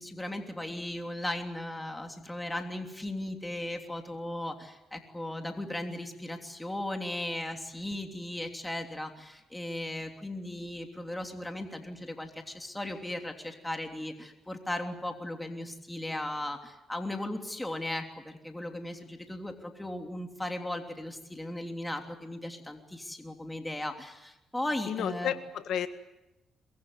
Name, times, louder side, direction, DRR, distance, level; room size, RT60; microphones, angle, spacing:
voice 1, 0.0-25.3, left 1 dB, 10° left, 4 dB, 3.2 m, -37 dB
voice 2, 24.9-25.9, left 9 dB, 75° left, 9 dB, 1.7 m, -31 dB
23.5 x 21.5 x 9.7 m, 0.94 s
cardioid pair, 90°, 0 cm